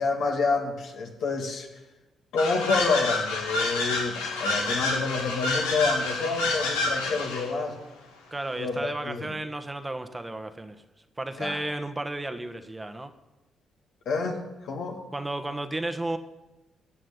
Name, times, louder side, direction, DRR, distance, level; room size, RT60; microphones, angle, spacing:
voice 1, 0.0-1.7 2.3-7.8 8.6-9.3 11.4-11.6 14.1-15.0, left 4 dB, 65° left, 2 dB, 2.6 m, -28 dB
sound 1, 2.4-7.5, left 3 dB, 85° left, 1.8 m, -28 dB
voice 2, 8.3-10.8 11.2-13.1 15.1-16.2, right 2 dB, 20° right, 9 dB, 1.3 m, -33 dB
17.0 x 6.3 x 9.0 m, 1.0 s
hypercardioid pair, 50°, 0 cm